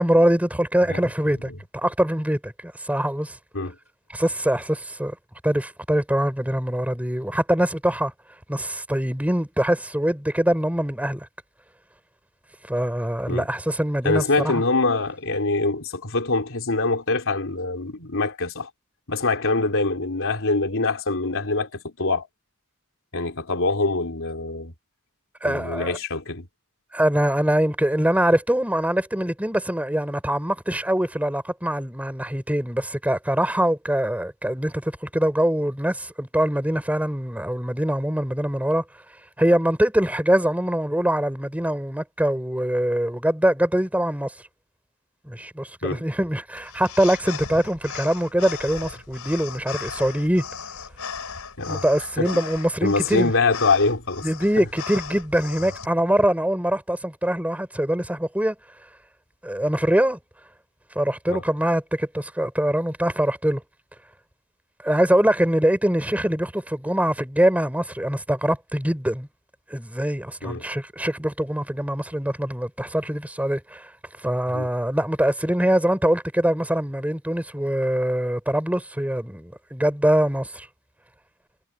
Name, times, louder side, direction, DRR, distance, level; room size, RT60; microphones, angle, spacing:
voice 1, 0.0-3.4 4.1-5.1 5.4-8.1 8.5-11.3 12.7-14.6 25.4-26.0 26.9-38.8 39.4-44.3 45.2-50.5 51.6-53.3 54.2-58.5 59.4-60.2 60.9-63.6 64.8-69.3 69.7-73.9 74.2-80.7, right 1 dB, 5° right, 3.4 m, -23 dB
voice 2, 14.0-18.7 19.1-22.3 23.1-24.7 25.4-26.5 45.8-46.0 51.6-51.8 52.2-52.3 52.8-54.2 61.3-61.4 70.4-70.6 74.5-74.7, left 3 dB, 65° left, 3.8 m, -24 dB
sound 1, 46.6-55.9, left 6 dB, 90° left, 4.3 m, -37 dB
head